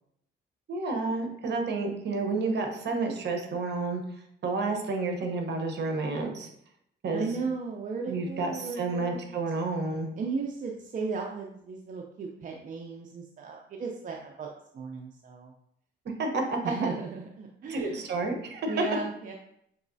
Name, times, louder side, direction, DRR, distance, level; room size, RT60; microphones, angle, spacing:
voice 1, 0.7-4.0 4.4-6.5 7.0-7.4 8.1-10.1 16.2-16.6 17.7-18.7, right 3 dB, 60° right, 3 dB, 1.0 m, -30 dB
voice 2, 7.1-9.4 10.2-14.5 14.7-15.5 16.6-18.0 18.7-19.3, right 4 dB, 40° right, 0 dB, 0.5 m, -35 dB
5.8 x 3.0 x 2.7 m, 0.73 s
cardioid pair, 90°, 20 cm